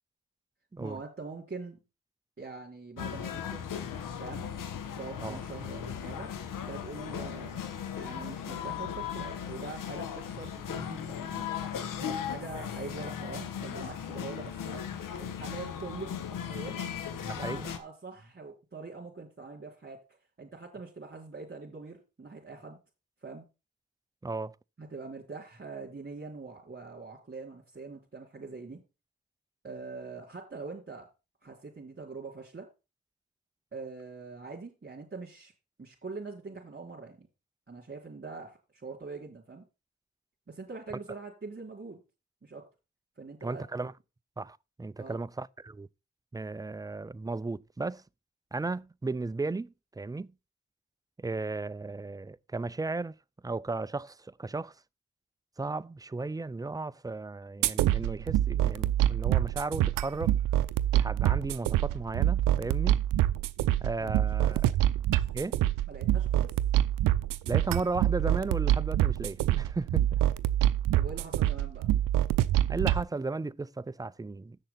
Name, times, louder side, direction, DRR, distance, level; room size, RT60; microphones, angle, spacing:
voice 1, 0.8-1.8 2.4-3.6 4.2-4.5 5.0-6.3 6.7-7.6 7.9-11.5 12.0-14.9 15.2-16.8 17.4-20.0 20.4-22.8 23.2-23.5 24.8-28.8 29.6-31.1 31.4-32.7 33.7-35.5 35.8-37.3 37.7-39.6 40.5-42.0 42.4-42.7 43.2-43.6 45.0-45.2 64.0-64.1 64.4-64.5 65.9-66.5 70.9-71.9, right 4 dB, 30° right, 3.4 m, -43 dB
sound 1, 3.0-17.8, left 8 dB, 85° left, 1.1 m, -37 dB
voice 2, 17.3-17.7 24.2-24.6 43.4-43.9 44.4-45.9 46.3-48.0 48.5-50.3 51.2-53.1 53.4-54.7 55.6-60.3 60.9-63.0 63.8-64.6 65.3-65.6 67.5-70.2 72.7-74.6, right 3 dB, 10° right, 0.4 m, -35 dB
sound 2, 57.6-73.0, right 13 dB, 90° right, 0.5 m, -26 dB
7.8 x 6.6 x 5.6 m
supercardioid pair, 45°, 32 cm